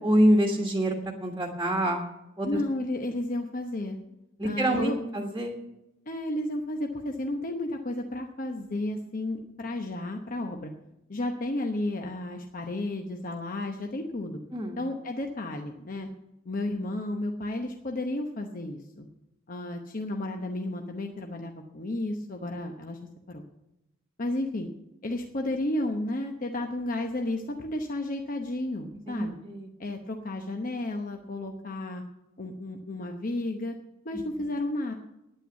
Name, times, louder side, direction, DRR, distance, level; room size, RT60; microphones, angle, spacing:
voice 1, 0.0-2.0 2.4-2.6 4.4-5.6 14.5-14.8 29.1-29.7, right 1 dB, 15° right, 1 dB, 1.4 m, -26 dB
voice 2, 2.4-4.0 4.4-5.0 6.1-10.7 11.1-14.4 14.8-16.1 16.4-19.1 19.5-23.0 23.3-23.4 24.2-24.7 25.0-29.4 29.8-32.0 32.4-33.8 34.0-34.9, left 1 dB, 40° left, 3 dB, 0.9 m, -32 dB
9.9 x 9.0 x 8.2 m, 0.91 s
head